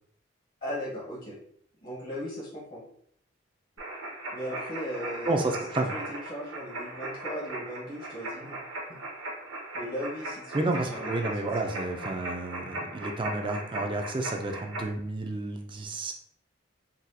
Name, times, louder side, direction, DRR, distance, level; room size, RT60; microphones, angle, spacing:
voice 1, 0.6-1.4 1.8-2.8 4.3-5.6 5.9-8.6 8.9-9.0 9.7-11.7, equal, 50° left, -7 dB, 1.0 m, -37 dB
sound 1, 3.8-14.8, right 2 dB, 80° right, 0.8 m, -38 dB
voice 2, 5.3-5.9 10.5-16.1, right 2 dB, 25° right, 4 dB, 0.3 m, -31 dB
4.1 x 2.2 x 2.6 m, 0.66 s
head